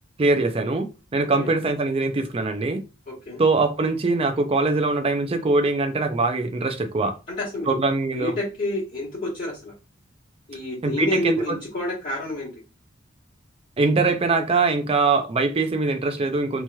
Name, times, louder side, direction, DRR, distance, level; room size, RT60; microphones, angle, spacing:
voice 1, 0.2-0.9 1.1-2.8 3.4-7.2 7.7-8.4 10.8-11.6 13.8-16.6, right 3 dB, 30° right, 0.4 m, -22 dB
voice 2, 3.1-3.4 7.4-7.8 8.1-9.7 10.5-12.5, left 1 dB, 40° left, 1.3 m, -29 dB
3.0 x 2.8 x 2.2 m
head